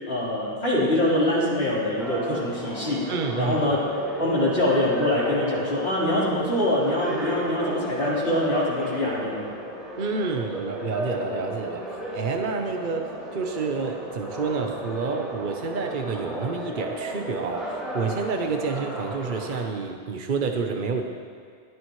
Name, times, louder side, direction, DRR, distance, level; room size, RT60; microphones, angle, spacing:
voice 1, 0.1-3.8 4.2-9.5, left 1 dB, 80° left, -7 dB, 4.4 m, -24 dB
sound 1, 2.0-19.6, equal, ahead, 4.8 m, -34 dB
voice 2, 3.1-3.5 10.0-11.9 12.1-21.0, right 4 dB, 55° right, 3 dB, 1.1 m, -29 dB
22.0 x 16.0 x 3.2 m, 2.1 s
omnidirectional pair, 1.0 m